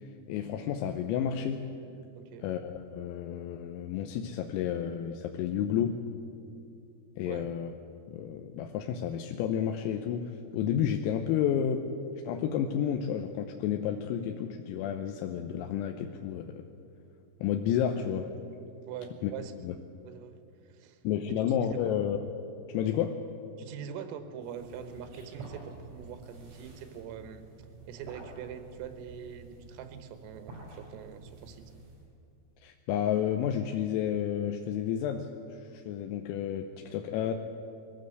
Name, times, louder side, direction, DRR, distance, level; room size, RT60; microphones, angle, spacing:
voice 1, 0.3-1.7 2.4-6.1 7.2-7.7 8.1-11.9 12.3-16.7 17.4-18.4 19.2-19.3 19.6-19.8 21.1-22.3 22.7-23.3 32.6-37.3, left 9 dB, 90° left, 4 dB, 3.5 m, -31 dB
voice 2, 2.2-2.5 7.2-7.5 18.9-19.5 20.1-21.0 21.7-21.9 23.6-27.4 27.9-31.7, right 8 dB, 90° right, 8 dB, 3.9 m, -43 dB
sound 1, 24.4-32.1, right 3 dB, 70° right, 8.3 m, -49 dB
22.0 x 15.5 x 7.8 m, 2.6 s
omnidirectional pair, 5.9 m